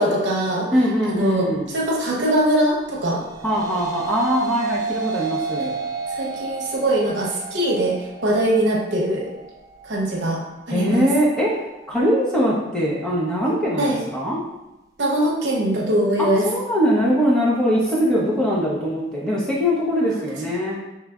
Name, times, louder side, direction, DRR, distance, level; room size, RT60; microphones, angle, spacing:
voice 1, 0.0-0.7 1.0-3.2 5.6-5.7 6.1-9.3 9.8-11.1 13.8-14.0 15.0-16.4 20.1-20.2, right 1 dB, 70° right, -3 dB, 0.9 m, -22 dB
voice 2, 0.7-1.7 3.4-5.7 10.7-11.5 11.9-14.4 16.2-20.8, equal, 5° left, -6 dB, 0.9 m, -21 dB
sound 1, 3.0-12.1, right 5 dB, 20° right, 0.4 m, -31 dB
5.5 x 3.2 x 2.4 m, 0.95 s
head